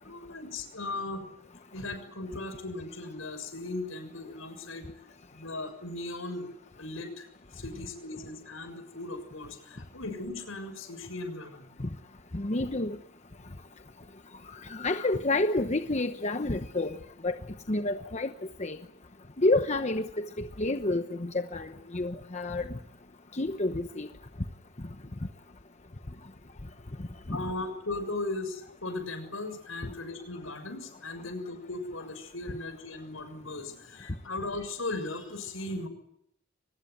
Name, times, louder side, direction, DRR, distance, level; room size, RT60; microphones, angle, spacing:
voice 1, 0.0-1.3 1.7-4.9 5.3-6.5 6.8-7.3 7.5-11.7 27.3-35.9, left 2 dB, 80° left, 8 dB, 6.8 m, -37 dB
voice 2, 12.3-13.0 14.6-17.0 17.2-17.4 17.7-18.3 18.6-18.8 19.4-22.7 23.3-24.1 27.3-27.4, left 2 dB, 35° left, 7 dB, 1.0 m, -29 dB
23.0 x 20.0 x 9.6 m, 0.73 s
head